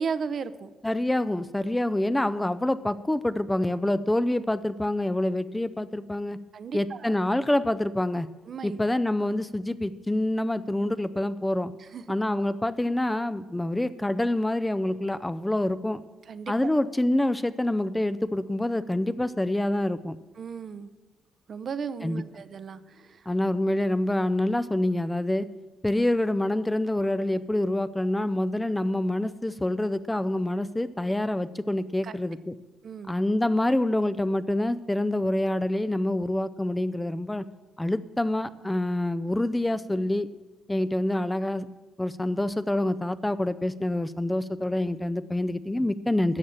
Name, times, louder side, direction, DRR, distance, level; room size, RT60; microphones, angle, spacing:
voice 1, 0.0-0.7 6.5-7.2 8.5-8.8 11.8-12.0 16.3-16.7 20.4-20.9 21.5-23.3 32.0-32.1 32.8-33.2, right 6 dB, 50° right, 13 dB, 0.6 m, -35 dB
voice 2, 0.8-6.4 6.7-8.3 8.6-11.7 12.1-16.0 16.5-20.2 22.0-22.2 23.3-25.5 25.8-32.6 33.1-37.4 37.8-40.3 40.7-41.7 42.0-46.4, left 1 dB, 10° left, 13 dB, 0.4 m, -26 dB
13.0 x 7.4 x 7.1 m, 1.2 s
cardioid pair, 90°, 0 cm